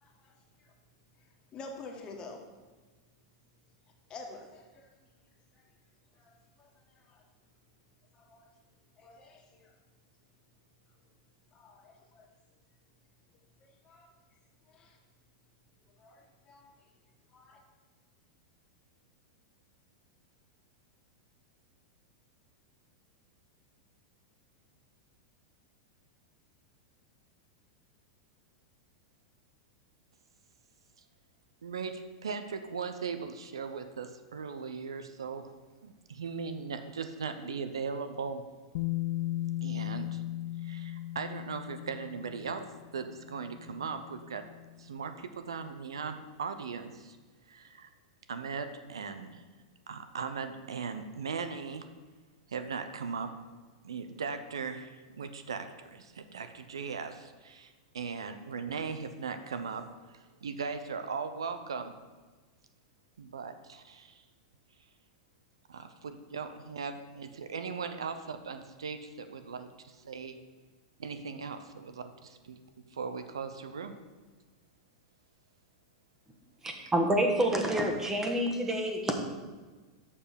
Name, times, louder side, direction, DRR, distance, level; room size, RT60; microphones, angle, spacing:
voice 1, 0.0-0.3 0.6-0.7 1.5-2.5 4.1-4.9 5.5-5.6 6.2-6.7 7.1-7.2 8.1-8.5 9.0-9.7 11.5-12.3 13.8-14.1 14.7-15.0 16.0-16.7 17.3-17.6, left 3 dB, 30° left, 2 dB, 1.6 m, -49 dB
voice 2, 31.6-35.5 35.8-38.4 39.6-40.2 40.6-42.7 42.9-44.4 44.8-47.2 47.5-47.9 48.3-49.4 49.9-51.9 52.5-53.3 53.8-59.8 60.1-61.9 63.2-64.2 65.7-70.4 71.0-72.6 72.9-73.9 76.8-76.9, right 5 dB, 85° right, 9 dB, 0.7 m, -38 dB
Bass guitar, 38.7-44.8, left 15 dB, 60° left, 0.3 m, -37 dB
voice 3, 76.6-79.1, right 1 dB, 15° right, 3 dB, 1.4 m, -28 dB
6.8 x 5.7 x 6.8 m, 1.3 s
hypercardioid pair, 105°, 3 cm